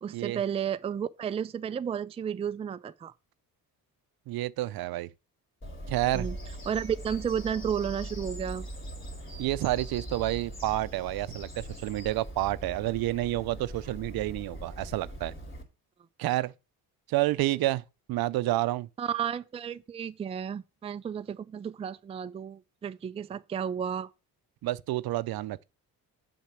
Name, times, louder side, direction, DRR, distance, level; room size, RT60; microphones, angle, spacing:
voice 1, 0.0-3.1 6.1-6.4 6.7-8.7 19.0-24.1, right 8 dB, 15° right, 0.3 m, -32 dB
voice 2, 4.3-5.1 5.9-6.3 9.4-15.3 16.2-16.5 17.1-17.8 18.1-18.9 24.6-25.6, right 16 dB, 75° right, 0.6 m, -29 dB
Bird vocalization bird call bird song, 5.6-15.6, right 1 dB, 35° left, 2.6 m, -41 dB
7.5 x 4.5 x 7.1 m
cardioid pair, 120°, 37 cm